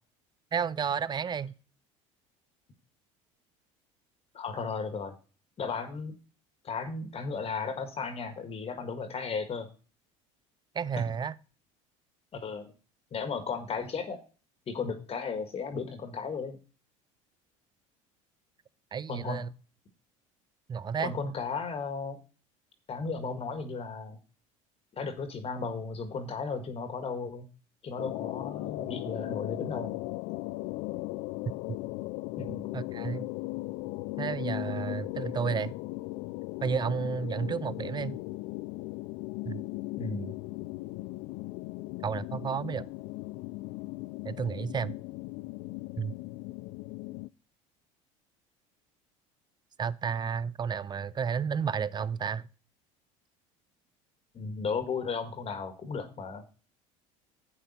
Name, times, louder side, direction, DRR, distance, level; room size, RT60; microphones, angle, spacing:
voice 1, 0.5-1.5 10.7-11.3 18.9-19.5 20.7-21.1 32.7-33.2 34.2-35.7 36.6-38.2 39.4-39.6 42.0-42.9 44.2-45.0 46.0-46.1 49.8-52.5, right 6 dB, 25° right, 0.6 m, -31 dB
voice 2, 4.3-5.1 5.6-6.1 6.6-9.7 11.0-11.1 12.3-12.7 13.1-14.2 14.7-16.6 19.1-19.5 21.0-22.2 22.9-24.2 25.0-27.5 27.8-30.0 32.4-32.7 40.0-40.3 54.3-56.4, left 5 dB, 35° left, 1.6 m, -35 dB
sound 1, 28.0-47.3, left 22 dB, 65° left, 0.4 m, -37 dB
8.1 x 7.7 x 4.3 m
hypercardioid pair, 80°, 16 cm